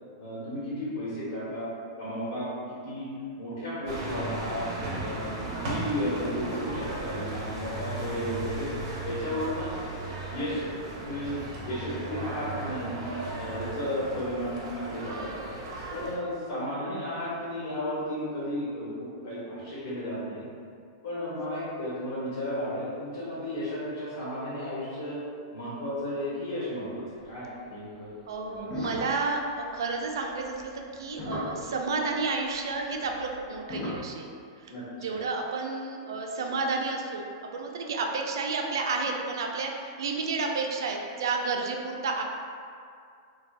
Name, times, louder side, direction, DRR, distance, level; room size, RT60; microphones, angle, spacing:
voice 1, 0.2-1.7 2.0-3.1 3.4-4.6 5.0-8.7 9.0-9.7 10.3-10.6 11.0-13.0 13.3-15.3 15.9-20.5 21.0-25.2 25.5-28.1 28.4-28.7 34.6-35.2, equal, 75° left, -10 dB, 1.1 m, -33 dB
sound 1, 3.9-16.2, right 2 dB, 60° right, 0.8 m, -36 dB
voice 2, 28.3-34.3 34.6-34.7 35.0-42.2, right 3 dB, 85° right, 2 dB, 0.4 m, -31 dB
sound 2, 28.6-31.9 32.9-34.0, left 1 dB, 30° left, 0.7 m, -36 dB
3.2 x 2.2 x 2.5 m, 2.3 s
supercardioid pair, 140°, 2 cm